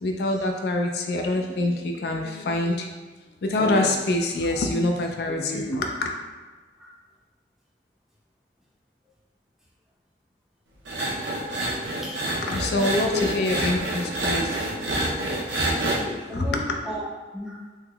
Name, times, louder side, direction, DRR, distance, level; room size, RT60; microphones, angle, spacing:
voice 1, 0.0-2.9 3.4-6.1 12.4-15.0 15.4-16.1 16.3-16.6, left 2 dB, 60° left, 2 dB, 0.3 m, -26 dB
sound 1, 10.9-16.0, right 1 dB, 80° right, 0.6 m, -27 dB
voice 2, 12.0-12.3 12.8-13.3 15.7-17.1 17.3-17.6, left 2 dB, ahead, -4 dB, 0.4 m, -34 dB
3.5 x 2.8 x 2.2 m, 1.3 s
head